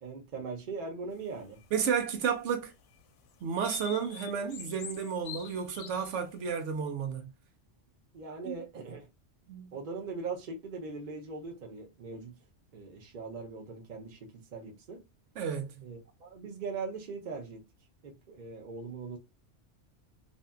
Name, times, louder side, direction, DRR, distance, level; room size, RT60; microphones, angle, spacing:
voice 1, 0.0-1.6 8.1-9.1 9.7-12.4 12.7-15.0 15.8-17.6 18.0-19.2, right 4 dB, 45° right, 0.7 m, -40 dB
sound 1, 1.4-2.3 2.9-3.0 3.6-6.5, left 8 dB, 85° left, 0.9 m, -46 dB
voice 2, 1.7-2.7 3.4-7.3 8.4-8.5 9.5-9.7 15.4-15.8, right 7 dB, 80° right, 0.9 m, -32 dB
2.7 x 2.5 x 2.2 m
omnidirectional pair, 1.2 m